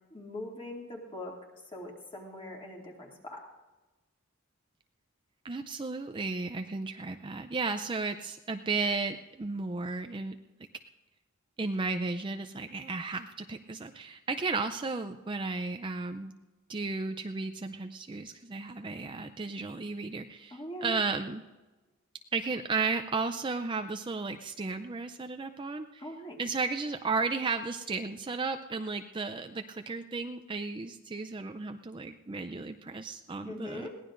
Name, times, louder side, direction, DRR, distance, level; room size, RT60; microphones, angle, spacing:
voice 1, 0.1-1.4 1.7-3.4 20.5-21.0 26.0-26.4 33.5-33.9, left 1 dB, 25° left, -1 dB, 2.4 m, -41 dB
voice 2, 5.4-10.4 11.6-16.3 16.7-21.4 22.3-26.1 26.4-33.9, right 4 dB, 25° right, 7 dB, 0.4 m, -34 dB
22.0 x 17.0 x 2.5 m, 1.2 s
head